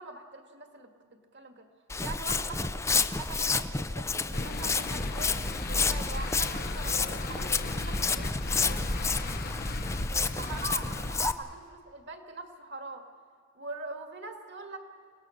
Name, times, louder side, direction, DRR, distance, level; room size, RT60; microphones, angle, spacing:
voice 1, 0.0-1.7 2.0-5.3 5.7-8.9 10.1-13.0 13.5-14.8, right 3 dB, 55° right, 4 dB, 2.2 m, -43 dB
Walk footsteps, 1.9-11.3, left 4 dB, 15° left, 0.5 m, -30 dB
sound 1, 4.3-11.2, left 2 dB, 45° left, 1.0 m, -36 dB
28.5 x 18.0 x 6.6 m, 2.1 s
head